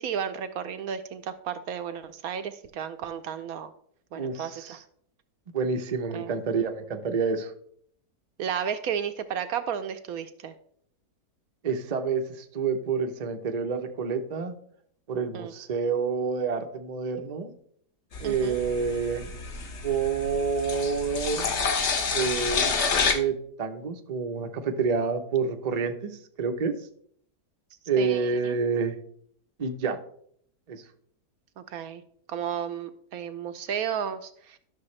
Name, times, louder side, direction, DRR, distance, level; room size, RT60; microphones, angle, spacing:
voice 1, 0.0-3.7 4.1-4.8 6.1-6.4 8.4-10.5 15.3-15.5 18.2-18.6 28.0-28.6 31.6-32.0 32.3-34.6, right 8 dB, 70° right, 10 dB, 1.0 m, -33 dB
voice 2, 4.1-4.8 5.5-7.5 11.6-14.5 15.1-17.5 18.2-19.3 19.8-21.5 22.1-22.8 23.1-26.7 27.9-29.0 29.6-30.0 30.7-30.8, right 5 dB, 45° right, 5 dB, 0.5 m, -28 dB
sound 1, 18.1-23.1, left 5 dB, 50° left, 1.0 m, -29 dB
11.5 x 6.3 x 3.2 m, 0.63 s
omnidirectional pair, 1.8 m